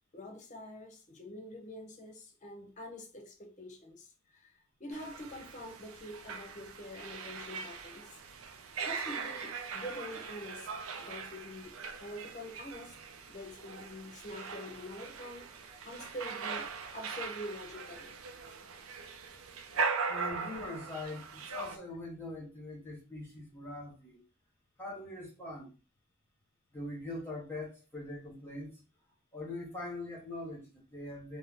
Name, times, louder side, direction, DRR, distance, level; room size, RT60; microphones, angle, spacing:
voice 1, 0.1-4.5 4.8-8.2 8.8-10.7 11.0-11.7 12.0-12.9 13.3-16.7 16.9-18.1, left 1 dB, 35° left, 0.7 m, -45 dB
sound 1, 4.9-21.8, right 5 dB, 85° right, 0.4 m, -40 dB
voice 2, 20.1-24.2 24.8-25.8 26.7-28.8 29.3-31.4, left 2 dB, 10° left, 0.9 m, -42 dB
2.6 x 2.1 x 3.5 m
head